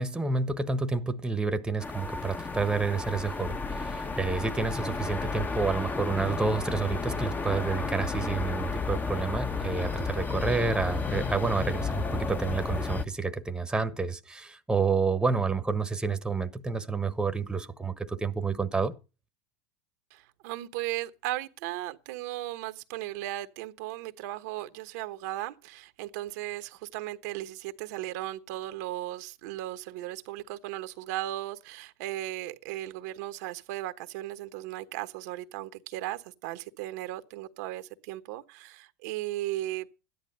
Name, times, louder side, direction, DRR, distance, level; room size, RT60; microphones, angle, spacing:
voice 1, 0.0-18.9, right 4 dB, 10° right, 1.3 m, -29 dB
sound 1, 1.8-13.0, left 4 dB, 20° left, 1.2 m, -32 dB
voice 2, 20.1-39.9, right 15 dB, 70° right, 1.1 m, -36 dB
13.0 x 10.5 x 5.4 m
hypercardioid pair, 90°, 9 cm